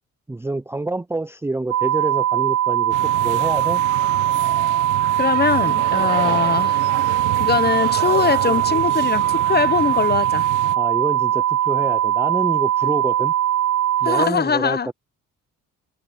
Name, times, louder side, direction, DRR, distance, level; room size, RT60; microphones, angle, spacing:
voice 1, 0.3-3.8 6.2-6.5 10.7-13.3 14.0-14.9, right 2 dB, 10° right, 0.5 m, -27 dB
sound 1, 1.7-14.3, right 11 dB, 50° right, 0.7 m, -20 dB
sound 2, 2.9-10.8, right 16 dB, 85° right, 0.8 m, -30 dB
voice 2, 5.2-6.8 7.4-10.5 14.0-14.9, left 6 dB, 35° left, 1.2 m, -21 dB
cardioid pair, 90°, 30 cm